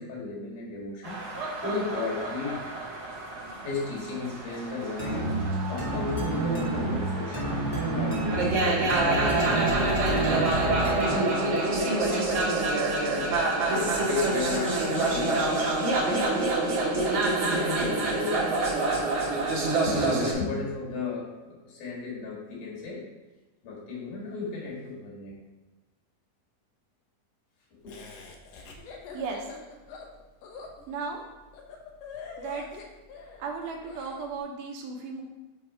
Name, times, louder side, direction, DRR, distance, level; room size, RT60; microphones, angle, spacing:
voice 1, 0.0-2.6 3.6-7.5 7.9-12.7 13.0-15.7 16.0-16.5 17.4-18.5 19.8-23.1 23.6-25.4 27.7-28.2, left 4 dB, 90° left, -5 dB, 3.4 m, -35 dB
sound 1, 1.0-20.3, right 2 dB, 60° right, 2.2 m, -27 dB
sound 2, 5.0-11.5, right 2 dB, 20° right, 0.8 m, -29 dB
Laughter, 27.9-34.2, left 5 dB, 75° left, 1.6 m, -44 dB
voice 2, 29.1-29.4 30.9-31.2 32.4-32.7 33.4-35.2, right 4 dB, 80° right, 1 dB, 2.4 m, -35 dB
6.8 x 3.5 x 4.6 m, 1.2 s
omnidirectional pair, 3.6 m